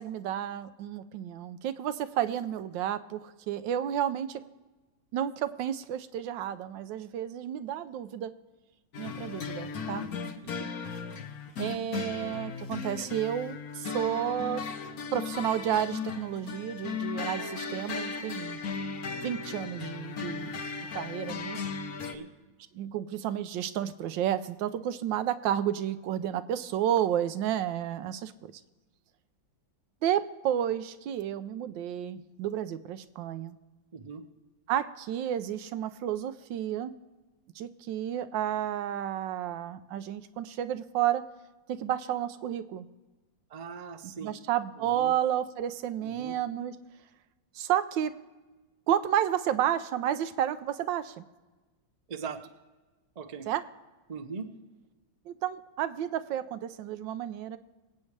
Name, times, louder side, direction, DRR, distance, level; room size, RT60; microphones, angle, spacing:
voice 1, 0.0-4.4 5.1-8.3 9.0-10.1 11.6-14.6 15.1-18.6 19.2-20.6 20.9-21.7 22.7-28.5 30.0-33.6 34.7-36.9 37.6-41.2 41.7-42.9 44.2-46.8 47.5-48.1 48.9-51.2 53.5-53.6 55.3-57.6, right 10 dB, 75° right, 13 dB, 1.3 m, -31 dB
sound 1, 8.9-22.1, left 5 dB, 55° left, 1.3 m, -36 dB
voice 2, 33.9-34.2 43.5-44.3 44.8-45.1 46.0-46.3 52.1-52.4 53.2-53.5 54.1-54.5, right 5 dB, 60° right, 6 dB, 0.4 m, -40 dB
25.0 x 8.5 x 3.2 m, 1.2 s
omnidirectional pair, 2.1 m